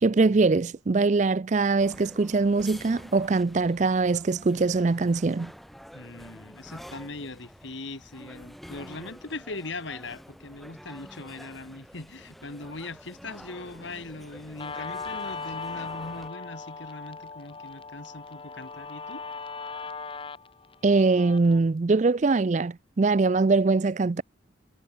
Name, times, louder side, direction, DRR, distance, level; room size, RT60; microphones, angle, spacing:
voice 1, 0.0-5.5 20.8-24.2, right 3 dB, 40° right, 0.4 m, -22 dB
sound 1, 1.8-16.3, equal, ahead, 7.8 m, -48 dB
voice 2, 5.9-19.2, left 3 dB, 70° left, 2.3 m, -40 dB
Guitar, 14.6-21.6, left 4 dB, 25° left, 0.9 m, -38 dB
head